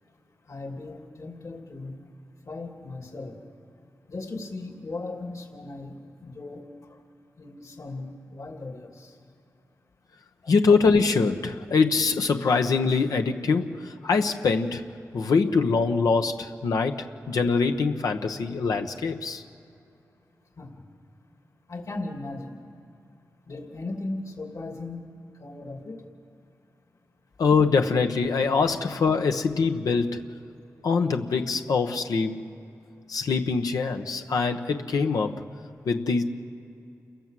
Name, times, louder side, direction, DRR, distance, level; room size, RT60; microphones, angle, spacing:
voice 1, 0.5-2.0 2.5-3.3 4.1-7.0 7.4-9.1 10.4-10.5 20.6-20.8 21.7-22.6 23.5-25.0 25.4-26.0, left 2 dB, 60° left, 2 dB, 2.9 m, -37 dB
voice 2, 10.5-14.9 15.1-19.4 27.4-30.2 30.8-32.4 33.1-35.5 35.9-36.2, left 4 dB, 90° left, 5 dB, 1.0 m, -23 dB
28.5 x 17.0 x 7.6 m, 2.7 s
cardioid pair, 55°, 6 cm